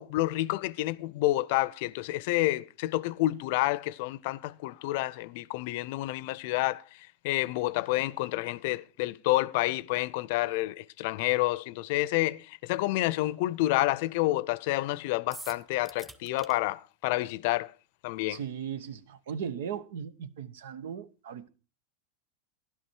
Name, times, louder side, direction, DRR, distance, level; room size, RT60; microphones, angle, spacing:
voice 1, 0.0-6.8 7.2-17.7 18.0-18.4, left 18 dB, 65° left, 0.5 m, -29 dB
sound 1, 15.3-16.5, right 1 dB, 10° right, 1.1 m, -45 dB
voice 2, 18.3-21.5, right 8 dB, 75° right, 1.1 m, -38 dB
13.0 x 11.5 x 4.5 m
hypercardioid pair, 115°, 0 cm